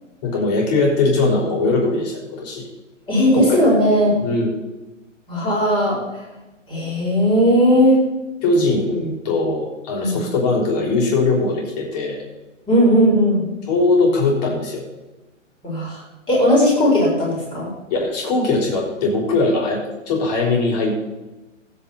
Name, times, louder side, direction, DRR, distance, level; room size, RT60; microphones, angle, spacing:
voice 1, 0.2-2.6 3.3-3.6 4.2-4.6 8.4-12.2 13.7-14.8 17.9-21.1, left 3 dB, 30° left, -1 dB, 4.5 m, -20 dB
voice 2, 3.1-4.1 5.3-6.2 6.7-8.0 10.0-10.2 12.7-13.4 15.6-17.7, equal, 10° left, -4 dB, 4.6 m, -17 dB
19.0 x 8.9 x 4.3 m, 1.1 s
hypercardioid pair, 160°, 39 cm